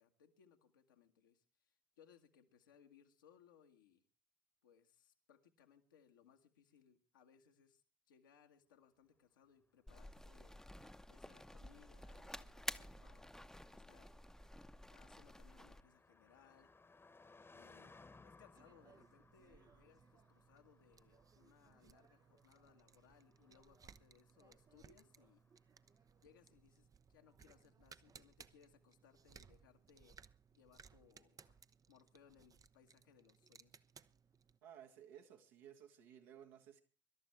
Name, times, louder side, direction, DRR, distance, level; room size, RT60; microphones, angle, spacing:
voice 1, 0.0-4.0 4.6-13.3 13.7-14.1 14.9-16.7 17.5-18.0 18.2-25.4 26.2-33.8, left 8 dB, 80° left, 1.5 m, -68 dB
Car passing by, 9.5-26.0, left 3 dB, 20° left, 1.2 m, -67 dB
sound 1, 9.9-15.8, left 1 dB, 5° left, 0.9 m, -51 dB
sound 2, 18.5-34.6, right 6 dB, 35° right, 0.7 m, -65 dB
voice 2, 34.6-36.8, right 9 dB, 70° right, 1.9 m, -58 dB
24.5 x 13.0 x 3.2 m
figure-of-eight pair, 45°, 11 cm